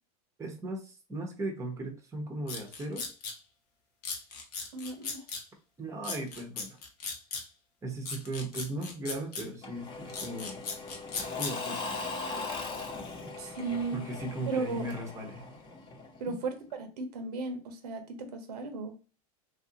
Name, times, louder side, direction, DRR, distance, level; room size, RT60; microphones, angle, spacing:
voice 1, 0.4-3.1 5.8-6.8 7.8-10.6 11.4-12.0 13.2-13.3 13.9-15.4 16.3-16.4, right 1 dB, 15° right, 2 dB, 0.8 m, -37 dB
sound 1, 2.5-3.3 4.0-5.4 6.0-7.4 8.1-9.4 10.1-11.5, left 4 dB, 75° left, 1.1 m, -37 dB
voice 2, 4.7-5.2 13.4-14.0 14.5-14.9 16.2-18.9, right 4 dB, 80° right, 6 dB, 0.8 m, -35 dB
Engine / Mechanisms / Drill, 9.6-16.3, left 3 dB, 25° left, 0.9 m, -39 dB
3.0 x 2.5 x 2.8 m, 0.34 s
hypercardioid pair, 110°, 20 cm